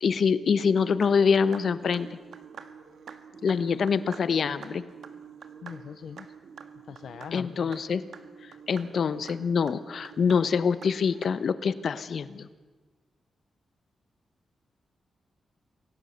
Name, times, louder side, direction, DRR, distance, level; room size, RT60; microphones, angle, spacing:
voice 1, 0.0-2.1 3.4-4.8 7.3-8.0 8.7-12.5, left 6 dB, 50° left, 14 dB, 1.0 m, -25 dB
sound 1, 0.7-11.3, right 7 dB, 65° right, 1.7 m, -47 dB
voice 2, 5.6-6.3 6.8-7.7, left 7 dB, 70° left, 12 dB, 0.6 m, -41 dB
26.5 x 18.0 x 8.0 m, 1.4 s
wide cardioid pair, 170°, 0 cm